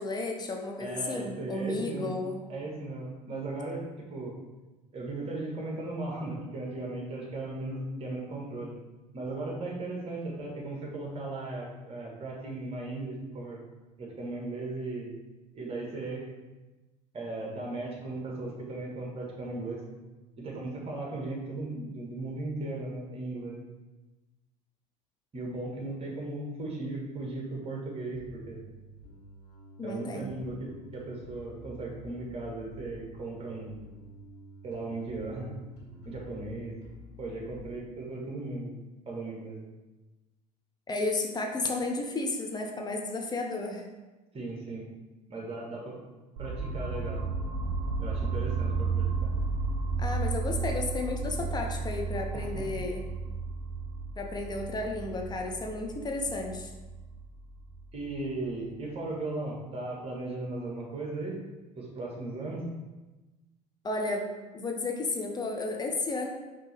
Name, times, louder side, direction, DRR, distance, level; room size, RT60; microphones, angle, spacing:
voice 1, 0.0-2.4 29.8-30.3 40.9-43.8 50.0-53.1 54.2-56.7 63.8-64.2 64.5-66.3, left 2 dB, 20° left, 2 dB, 0.6 m, -33 dB
voice 2, 0.8-2.2 2.5-4.4 4.9-8.7 9.1-13.6 14.0-15.1 15.5-16.2 17.1-19.8 20.4-23.5 25.3-28.6 29.8-33.8 34.6-35.5 36.0-36.8 37.2-38.7 39.0-39.6 44.3-44.8 45.3-46.0 46.4-47.2 48.0-49.3 52.3-52.6 57.9-61.4 61.8-62.7, right 2 dB, 30° right, -2 dB, 1.4 m, -37 dB
Bass guitar, 28.1-37.7, equal, 55° left, 1.4 m, -49 dB
sound 1, 46.4-58.3, right 4 dB, 50° right, 1.0 m, -33 dB
5.2 x 2.9 x 3.3 m, 1.1 s
figure-of-eight pair, 70°, 21 cm